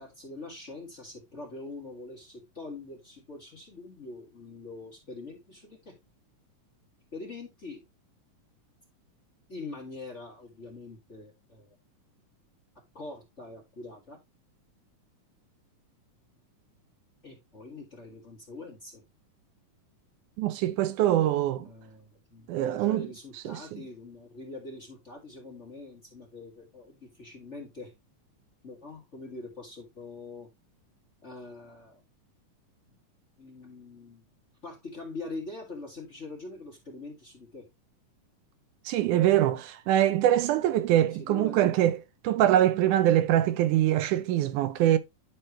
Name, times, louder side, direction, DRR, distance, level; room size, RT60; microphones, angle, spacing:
voice 1, 0.0-5.9 7.1-7.8 9.5-11.7 12.9-14.2 17.2-19.0 21.6-27.9 28.6-30.5 31.2-32.0 32.9-33.0 33.4-34.3 34.6-37.7 41.1-41.9, left 3 dB, 30° left, 1.7 m, -43 dB
voice 2, 20.4-21.7 22.5-23.0 23.5-23.6 38.9-42.0 42.2-45.0, right 12 dB, 80° right, 2.1 m, -23 dB
11.0 x 4.4 x 3.0 m
omnidirectional pair, 3.6 m